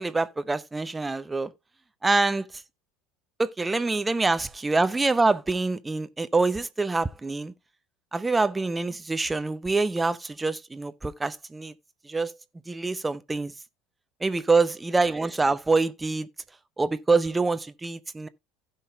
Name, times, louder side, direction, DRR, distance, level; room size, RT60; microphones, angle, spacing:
voice 1, 0.0-1.5 2.0-2.4 3.4-7.5 8.1-11.7 12.1-12.3 12.7-13.5 14.2-16.3 16.8-18.3, right 3 dB, 15° right, 0.7 m, -25 dB
16.0 x 5.5 x 2.2 m
figure-of-eight pair, 70°, 0 cm